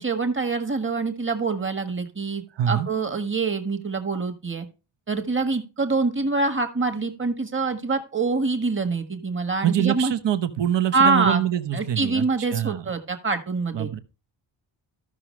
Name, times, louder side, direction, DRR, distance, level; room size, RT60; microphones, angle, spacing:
voice 1, 0.0-4.6 5.1-10.1 10.9-11.4 11.7-13.9, right 4 dB, 25° right, 1.5 m, -25 dB
voice 2, 2.6-2.9 9.6-12.2 12.5-12.8 13.7-14.0, right 10 dB, 60° right, 1.1 m, -24 dB
14.0 x 6.1 x 3.2 m
wide cardioid pair, 145°, 49 cm